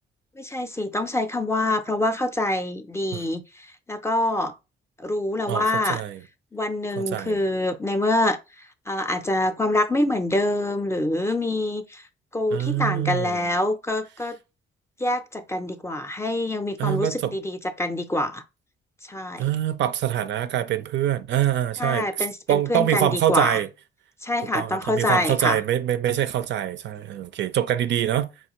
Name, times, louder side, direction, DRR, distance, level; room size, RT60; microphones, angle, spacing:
voice 1, 0.4-3.4 3.9-4.5 5.0-6.0 6.5-8.4 8.9-12.0 12.3-14.4 15.0-18.4 19.1-19.4 21.8-23.6 24.2-25.6, left 1 dB, 15° left, 0.5 m, -25 dB
voice 2, 5.5-6.2 7.0-7.4 12.5-13.5 16.8-17.4 19.4-23.7 24.4-28.3, right 11 dB, 65° right, 0.4 m, -25 dB
4.4 x 2.3 x 2.9 m
cardioid pair, 90°, 20 cm